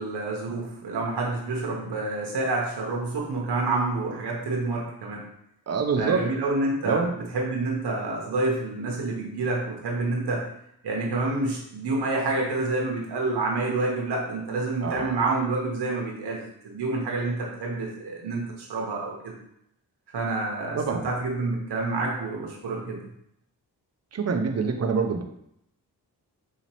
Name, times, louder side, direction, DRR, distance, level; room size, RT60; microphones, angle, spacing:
voice 1, 0.0-5.2 6.0-10.4 10.8-19.4 20.1-23.1, right 3 dB, 85° right, -2 dB, 0.9 m, -28 dB
voice 2, 5.7-6.2 6.8-7.1 14.8-15.2 20.8-21.1 24.1-25.2, right 5 dB, 40° right, 5 dB, 0.6 m, -26 dB
4.2 x 2.9 x 2.9 m, 0.75 s
cardioid pair, 60°, 40 cm